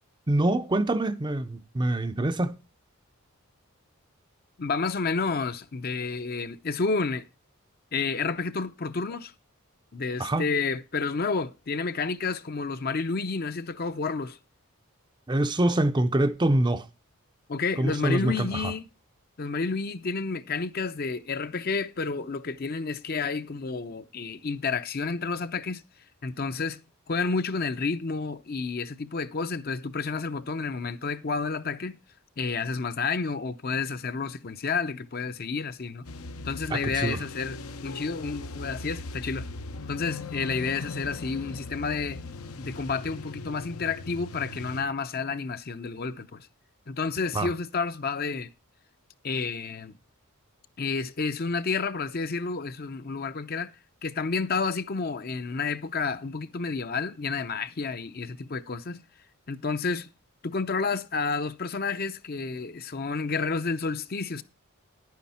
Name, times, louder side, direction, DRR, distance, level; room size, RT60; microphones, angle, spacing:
voice 1, 0.3-2.6 10.2-10.4 15.3-16.9 17.8-18.7 36.7-37.2 47.3-47.5, right 1 dB, 20° right, 0.5 m, -25 dB
voice 2, 4.6-7.3 7.9-9.3 9.9-14.4 17.5-18.8 19.4-25.8 26.2-32.0 32.4-36.1 36.4-39.5 39.9-42.2 42.6-46.5 46.9-48.5 49.2-50.0 50.8-53.7 54.0-59.0 59.5-60.1 60.4-64.4, left 4 dB, 45° left, 0.6 m, -30 dB
sound 1, 36.1-44.8, left 2 dB, 80° left, 0.9 m, -39 dB
11.0 x 9.6 x 4.2 m
head